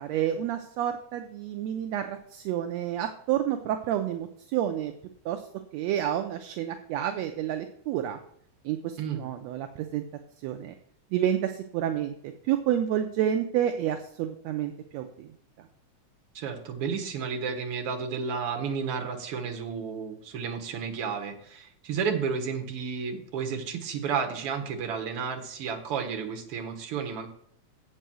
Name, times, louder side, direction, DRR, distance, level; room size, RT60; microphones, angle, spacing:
voice 1, 0.0-4.9 5.3-5.4 5.7-8.2 8.7-10.0 10.4-10.7 11.1-12.1 12.4-15.3, right 10 dB, 75° right, 6 dB, 1.8 m, -29 dB
voice 2, 16.3-27.3, right 6 dB, 55° right, 2 dB, 2.1 m, -32 dB
8.0 x 5.5 x 7.5 m, 0.68 s
omnidirectional pair, 3.3 m